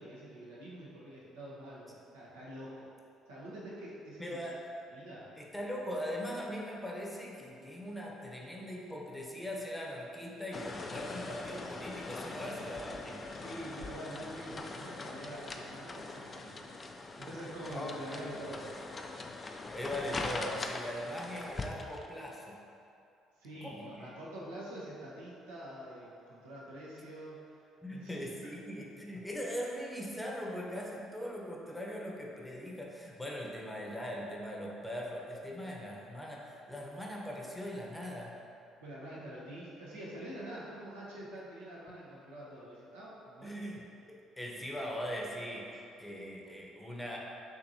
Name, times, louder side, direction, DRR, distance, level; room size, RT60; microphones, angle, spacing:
voice 1, 0.0-2.9 3.3-4.4 4.9-5.3 13.3-16.6 16.8-18.7 23.4-27.6 27.9-28.1 38.8-43.7, right 1 dB, 85° right, -7 dB, 0.9 m, -46 dB
voice 2, 4.2-4.7 5.4-13.2 19.7-22.6 23.6-24.1 27.8-38.4 43.4-47.2, equal, 10° left, -2 dB, 0.8 m, -40 dB
sound 1, 10.5-22.1, left 3 dB, 35° left, 0.4 m, -42 dB
5.9 x 3.0 x 2.7 m, 2.6 s
hypercardioid pair, 55°, 0 cm